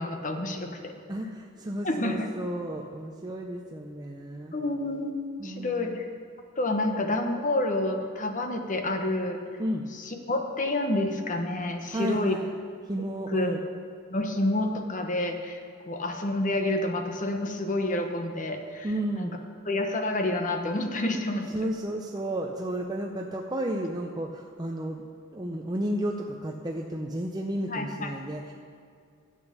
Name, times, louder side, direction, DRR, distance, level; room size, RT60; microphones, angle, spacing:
voice 1, 0.0-0.9 1.8-2.3 4.5-5.1 5.4-6.1 6.6-9.4 10.0-12.4 13.3-13.6 14.1-18.9 19.1-19.3 19.6-21.5 27.7-28.1, left 1 dB, 35° left, 5 dB, 1.0 m, -29 dB
voice 2, 1.1-4.6 5.4-6.0 9.6-9.9 11.9-12.5 12.9-13.6 18.8-19.4 21.5-28.5, right 1 dB, 20° right, 1 dB, 0.6 m, -32 dB
12.0 x 8.1 x 6.6 m, 2.3 s
head